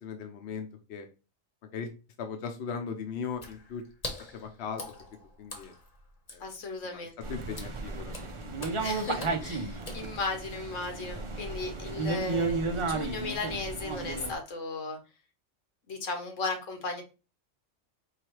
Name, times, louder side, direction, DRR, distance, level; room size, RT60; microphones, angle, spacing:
voice 1, 0.0-1.1 1.7-1.9 2.2-3.8 4.3-4.9 5.4-5.7 6.3-6.5 6.8-8.1 8.4-8.9 9.4-9.5 9.9-10.2, left 6 dB, 65° left, 5 dB, 0.9 m, -39 dB
Water / Splash splatter, 3.3-10.5, left 2 dB, 35° left, 1.0 m, -45 dB
voice 2, 6.4-7.2 8.8-15.0 15.9-17.0, left 3 dB, 85° left, 4 dB, 1.4 m, -36 dB
sound 1, 7.2-14.3, right 3 dB, 45° right, 0.4 m, -33 dB
4.7 x 3.2 x 3.1 m, 0.31 s
omnidirectional pair, 1.3 m